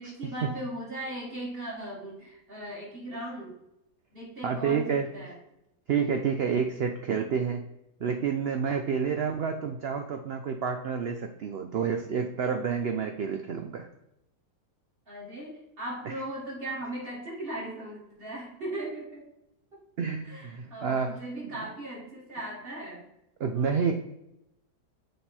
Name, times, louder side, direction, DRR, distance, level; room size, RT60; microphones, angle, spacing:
voice 1, 0.0-3.6 4.1-5.4 15.1-19.3 19.7-19.8 20.2-23.0 23.5-23.9, right 1 dB, 35° right, -6 dB, 2.6 m, -38 dB
voice 2, 4.4-5.1 5.9-7.6 8.0-13.9 20.0-21.2 23.4-23.9, right 6 dB, 75° right, 5 dB, 0.5 m, -29 dB
6.6 x 3.7 x 4.3 m, 0.83 s
omnidirectional pair, 1.7 m